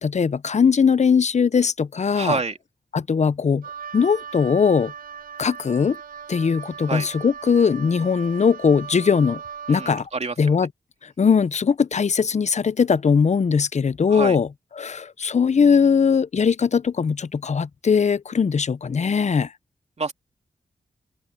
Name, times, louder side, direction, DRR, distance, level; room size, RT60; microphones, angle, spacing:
voice 1, 0.0-2.4 2.9-3.6 3.9-4.9 5.4-6.0 6.3-9.4 9.7-10.1 10.4-10.7 11.2-14.5 14.8-19.5, left 6 dB, 55° left, 0.7 m, -20 dB
voice 2, 2.1-2.6 6.9-7.1 9.7-10.3 14.1-14.4 20.0-20.1, right 4 dB, 50° right, 2.7 m, -27 dB
Wind instrument woodwind instrument, 3.6-10.1, right 7 dB, 85° right, 8.0 m, -38 dB
open air
cardioid pair, 50°, 14 cm